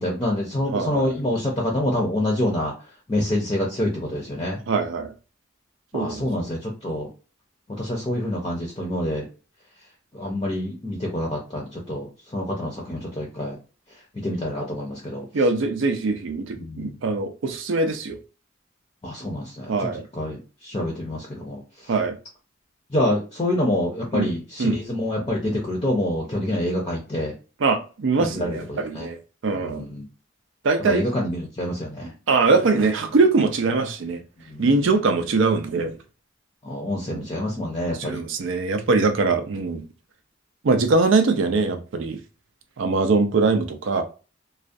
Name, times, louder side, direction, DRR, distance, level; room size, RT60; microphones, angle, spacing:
voice 1, 0.0-2.7 3.1-4.6 5.9-7.1 7.8-9.3 10.1-12.1 12.3-13.6 14.1-15.2 16.6-17.0 19.0-19.7 20.1-21.6 22.9-27.3 28.2-29.1 29.5-30.1 30.8-32.1 34.5-34.6 36.6-38.2, left 1 dB, 25° left, 0.5 m, -26 dB
voice 2, 0.7-1.1 4.7-5.1 5.9-6.2 15.3-18.2 19.7-20.0 21.9-22.2 24.1-24.3 24.6-24.8 27.6-29.2 29.4-29.9 30.6-31.1 32.3-34.2 34.6-36.0 37.1-37.3 37.8-39.8 40.6-42.2 42.8-44.0, right 3 dB, 70° right, 0.4 m, -22 dB
2.3 x 2.1 x 2.5 m
head